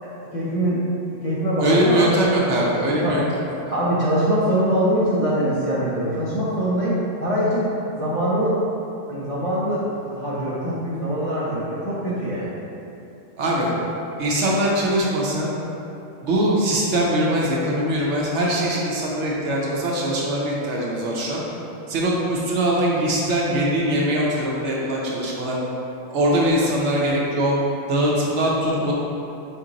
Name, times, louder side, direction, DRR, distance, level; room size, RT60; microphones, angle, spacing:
voice 1, 0.0-0.8 1.1-2.1 3.0-3.2 3.7-8.6 9.1-12.6, equal, 35° left, -11 dB, 0.6 m, -23 dB
voice 2, 1.6-3.2 3.7-3.8 13.4-13.7 14.2-15.5 16.2-21.4 21.9-25.6 26.1-27.5 27.9-28.9, right 1 dB, 65° right, -4 dB, 1.0 m, -22 dB
4.4 x 3.0 x 3.8 m, 2.8 s
omnidirectional pair, 1.4 m